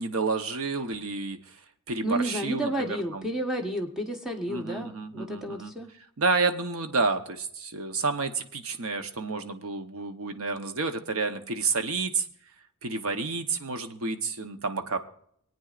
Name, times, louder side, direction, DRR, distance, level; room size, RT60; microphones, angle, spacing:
voice 1, 0.0-1.6 1.9-3.3 4.5-5.7 6.2-12.3 12.8-15.0, right 4 dB, 75° right, 7 dB, 0.9 m, -30 dB
voice 2, 2.0-5.9, right 1 dB, 5° right, 1 dB, 1.2 m, -31 dB
26.0 x 9.1 x 2.5 m, 0.68 s
head